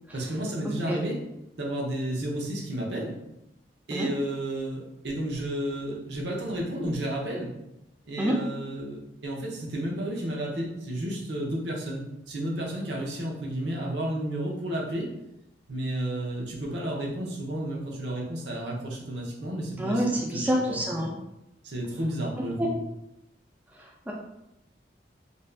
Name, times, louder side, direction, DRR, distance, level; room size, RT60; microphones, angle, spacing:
voice 1, 0.1-1.2 1.6-3.1 3.9-7.5 8.1-15.1 15.7-21.1 21.6-22.7, right 1 dB, 70° right, -2 dB, 0.7 m, -32 dB
voice 2, 0.6-1.0 3.9-4.1 8.2-8.3 19.8-21.1 22.6-22.7 24.1-24.2, equal, 10° right, -2 dB, 0.3 m, -27 dB
2.6 x 2.3 x 3.2 m, 0.86 s
head